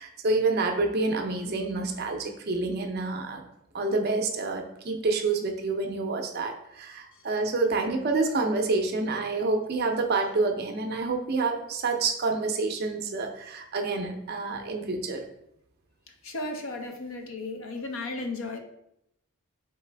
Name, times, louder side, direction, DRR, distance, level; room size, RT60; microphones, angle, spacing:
voice 1, 0.0-3.4 3.7-15.2, right 3 dB, 45° right, 4 dB, 0.5 m, -28 dB
voice 2, 16.2-18.6, left 2 dB, 60° left, 5 dB, 0.6 m, -34 dB
4.1 x 3.3 x 3.3 m, 0.77 s
head